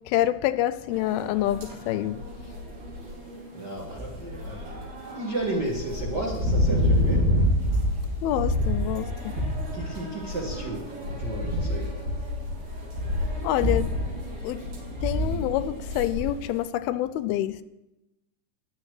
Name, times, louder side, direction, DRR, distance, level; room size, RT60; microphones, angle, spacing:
voice 1, 0.1-2.2 8.2-9.4 13.4-13.9 14.4-14.6 15.0-17.6, left 13 dB, 85° left, 2.4 m, -27 dB
sound 1, 0.9-16.5, left 1 dB, 70° right, 5.6 m, -28 dB
voice 2, 3.5-7.3 9.7-12.0, right 1 dB, 40° right, 1.6 m, -33 dB
14.5 x 10.5 x 4.9 m
omnidirectional pair, 4.4 m